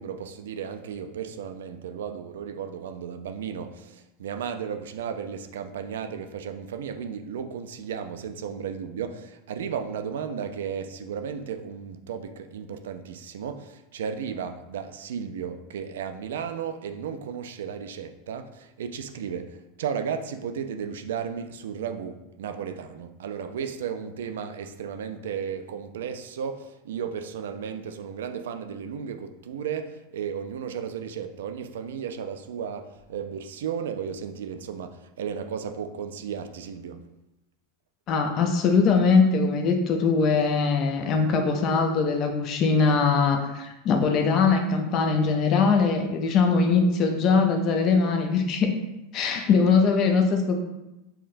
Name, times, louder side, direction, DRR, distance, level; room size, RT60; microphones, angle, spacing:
voice 1, 0.0-37.0, right 7 dB, 90° right, 8 dB, 0.3 m, -34 dB
voice 2, 38.1-48.8 49.1-50.6, left 5 dB, 40° left, 4 dB, 0.4 m, -21 dB
5.7 x 2.1 x 2.5 m, 0.95 s
supercardioid pair, 125°, 0 cm